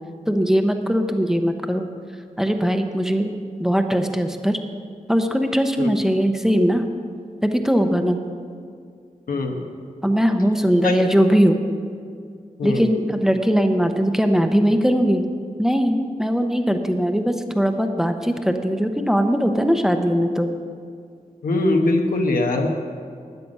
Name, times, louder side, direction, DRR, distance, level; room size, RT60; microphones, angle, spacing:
voice 1, 0.3-1.9 2.4-3.3 3.6-4.6 5.1-6.9 7.4-8.2 10.0-11.6 12.6-15.2 15.6-20.5, equal, 5° right, 6 dB, 0.7 m, -20 dB
voice 2, 21.4-22.7, left 2 dB, 90° left, 3 dB, 1.2 m, -21 dB
12.5 x 9.6 x 5.4 m, 2.2 s
wide cardioid pair, 135°, 14 cm